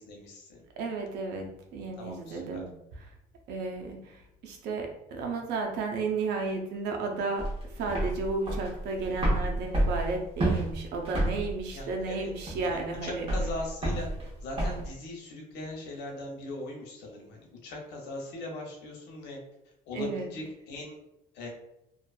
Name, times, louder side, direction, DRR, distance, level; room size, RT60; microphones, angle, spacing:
voice 1, 0.0-0.6 2.0-2.6 11.7-12.3 12.6-14.1 14.4-19.4 19.9-21.0 21.3-21.5, left 1 dB, 85° left, 0 dB, 0.7 m, -40 dB
voice 2, 0.8-2.7 3.5-7.4 7.7-13.3 19.9-20.3, right 3 dB, 85° right, 2 dB, 0.5 m, -33 dB
sound 1, 7.4-14.9, right 1 dB, 35° right, 0.9 m, -30 dB
2.5 x 2.3 x 2.3 m, 0.84 s
cardioid pair, 110°, 17 cm